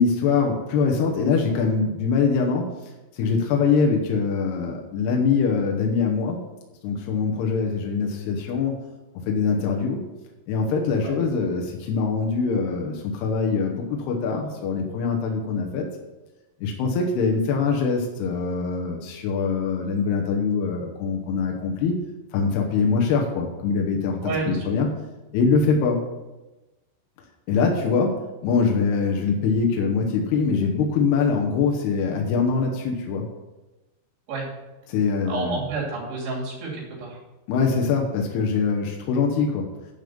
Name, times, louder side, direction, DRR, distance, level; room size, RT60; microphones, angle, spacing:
voice 1, 0.0-2.7 3.1-6.4 6.8-8.8 9.3-10.0 10.5-15.9 16.6-22.0 22.3-24.9 25.3-26.0 27.5-28.2 28.4-33.3 34.9-35.6 37.5-39.7, left 5 dB, 80° left, 1 dB, 3.1 m, -23 dB
voice 2, 24.2-24.7 34.3-34.5 35.3-37.2, right 3 dB, 85° right, -3 dB, 5.2 m, -29 dB
11.5 x 5.2 x 7.0 m, 1.1 s
omnidirectional pair, 4.6 m